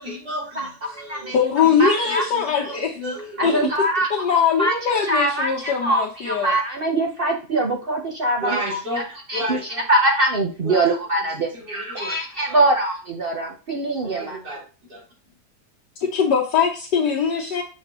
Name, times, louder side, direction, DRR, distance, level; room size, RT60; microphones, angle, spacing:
voice 1, 0.0-1.4 1.6-3.7 8.4-9.9 10.6-10.9 11.2-12.1 12.5-12.7 14.0-15.3, equal, 75° right, -6 dB, 4.3 m, -33 dB
voice 2, 0.6-1.3 1.8-2.2 3.4-4.2 4.6-4.7 5.1-8.8 9.3-9.6 9.9-11.5 11.9-14.4, right 2 dB, 45° right, 2 dB, 0.7 m, -23 dB
voice 3, 1.3-2.9 3.4-3.5 4.1-6.5 16.0-17.6, left 6 dB, 75° left, -3 dB, 1.5 m, -21 dB
6.7 x 5.2 x 3.0 m, 0.33 s
omnidirectional pair, 1.9 m